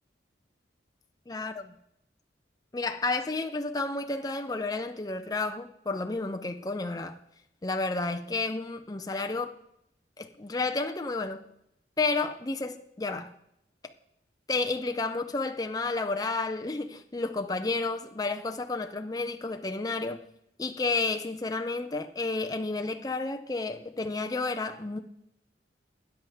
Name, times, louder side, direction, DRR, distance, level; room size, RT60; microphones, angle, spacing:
voice 1, 1.3-1.7 2.7-7.2 7.6-9.6 10.2-11.4 12.0-13.3 13.8-13.9 14.5-20.2 20.6-25.0, left 3 dB, 20° left, 0.5 m, -31 dB
13.5 x 9.1 x 3.5 m
head